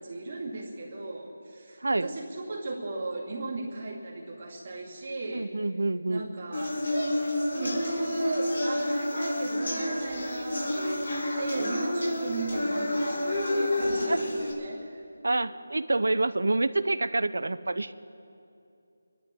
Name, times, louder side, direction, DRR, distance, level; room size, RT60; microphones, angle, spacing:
voice 1, 0.0-5.5 6.1-6.8 7.6-15.0, right 2 dB, 25° right, -3 dB, 2.5 m, -37 dB
voice 2, 1.8-2.1 5.3-6.2 14.1-14.2 15.2-17.9, right 2 dB, 75° right, 14 dB, 0.7 m, -27 dB
sound 1, 6.5-14.5, left 1 dB, 45° left, 5.0 m, -29 dB
27.0 x 11.5 x 4.6 m, 2.7 s
figure-of-eight pair, 180°, 0 cm